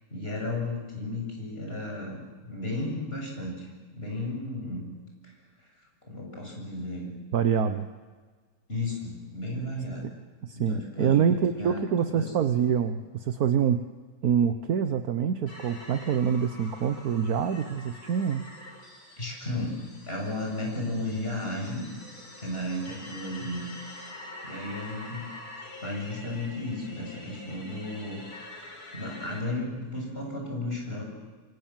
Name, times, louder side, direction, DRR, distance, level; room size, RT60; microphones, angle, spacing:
voice 1, 0.1-4.8 5.2-5.3 5.6-5.7 6.1-7.1 8.7-10.1 10.5-12.2 19.2-21.9 22.4-23.7 24.2-25.3 25.8-28.2 28.5-31.0, left 1 dB, 35° left, 0 dB, 8.3 m, -34 dB
voice 2, 7.3-7.9 10.4-13.8 14.2-18.5, right 7 dB, 70° right, 9 dB, 1.5 m, -25 dB
sound 1, 15.5-29.4, left 1 dB, 70° left, 4.9 m, -46 dB
27.5 x 26.5 x 7.6 m, 1.4 s
omnidirectional pair, 1.7 m